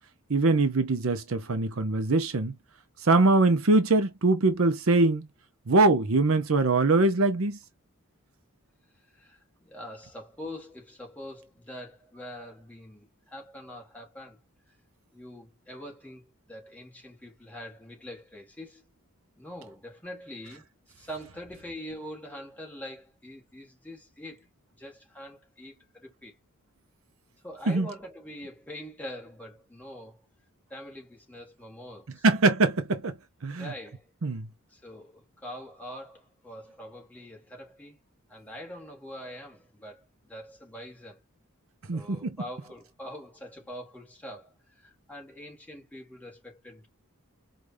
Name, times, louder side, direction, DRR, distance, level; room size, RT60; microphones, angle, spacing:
voice 1, 0.3-2.5 3.0-5.3 5.7-7.6 27.7-27.9 32.2-33.1 33.4-33.7 34.2-34.5 41.9-42.4, right 3 dB, 65° right, 0.7 m, -23 dB
voice 2, 9.1-14.4 15.1-18.8 19.4-20.7 21.0-24.5 24.8-26.3 27.4-30.2 30.7-32.2 33.5-34.1 34.7-38.0 38.3-41.2 41.9-46.9, equal, 5° left, 1.6 m, -44 dB
4.8 x 2.5 x 2.6 m
head